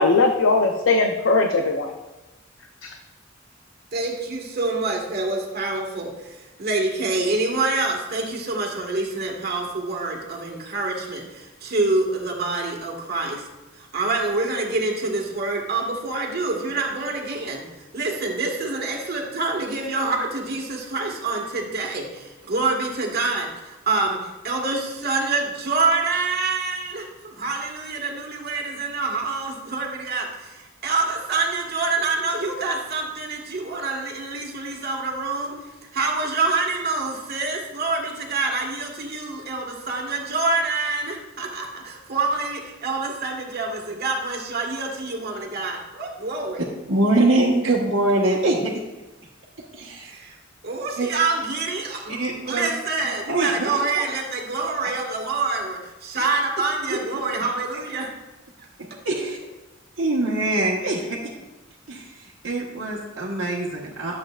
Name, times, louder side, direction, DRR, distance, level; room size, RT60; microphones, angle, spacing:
voice 1, 0.0-1.9 2.8-2.9, left 3 dB, 80° left, 3 dB, 0.7 m, -19 dB
voice 2, 3.9-13.5 13.8-17.7 17.9-35.6 35.9-46.6 50.0-50.4 50.6-52.2 52.4-58.1, right 3 dB, 55° right, 1 dB, 1.6 m, -26 dB
voice 3, 46.9-48.8 49.7-50.1 51.0-51.1 52.1-52.7 53.3-54.0 56.2-56.3 59.0-59.4 60.0-61.3 61.9-64.2, right 2 dB, 70° right, -7 dB, 1.3 m, -23 dB
12.0 x 7.8 x 2.4 m, 1.1 s
head